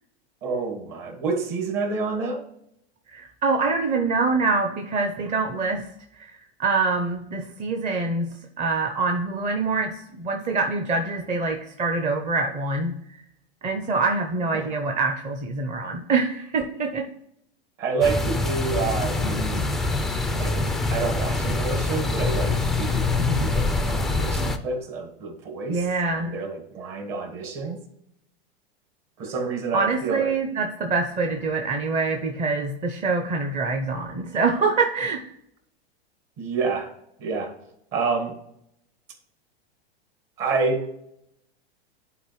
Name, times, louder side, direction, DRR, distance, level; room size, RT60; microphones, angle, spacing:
voice 1, 0.4-2.4 14.5-14.7 17.8-19.7 20.4-20.6 20.9-25.9 26.1-27.8 29.2-30.4 36.4-36.9 37.2-37.5 37.9-38.4 40.4-40.9, right 4 dB, 45° right, 5 dB, 1.8 m, -28 dB
voice 2, 3.1-5.9 6.2-6.3 6.6-12.9 13.6-17.0 23.2-23.5 25.7-26.3 29.7-35.2, right 3 dB, 25° right, 3 dB, 0.7 m, -25 dB
sound 1, 18.0-24.6, left 3 dB, ahead, 0.3 m, -25 dB
11.0 x 4.2 x 3.1 m, 0.77 s
hypercardioid pair, 110°, 31 cm